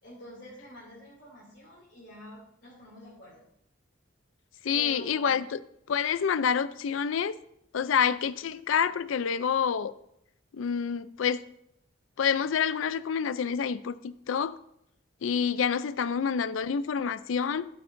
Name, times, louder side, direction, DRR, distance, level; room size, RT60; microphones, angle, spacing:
voice 1, 0.0-3.5 4.6-5.4, equal, 65° left, 2.7 m, -47 dB
voice 2, 4.7-5.6 5.9-7.4 7.7-9.9 10.5-11.4 12.2-14.6 15.2-17.7, left 7 dB, 90° left, 0.4 m, -27 dB
12.0 x 8.7 x 2.6 m
head